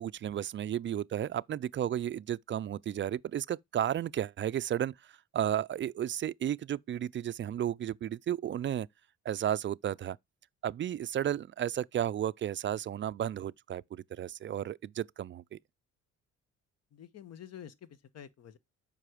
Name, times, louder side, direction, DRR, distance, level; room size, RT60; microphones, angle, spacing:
voice 1, 0.0-4.9 5.3-8.9 9.3-10.2 10.6-15.6, right 10 dB, 40° right, 0.4 m, -33 dB
voice 2, 16.9-18.6, left 9 dB, 55° left, 1.1 m, -49 dB
7.5 x 5.4 x 4.9 m
cardioid pair, 90°, 30 cm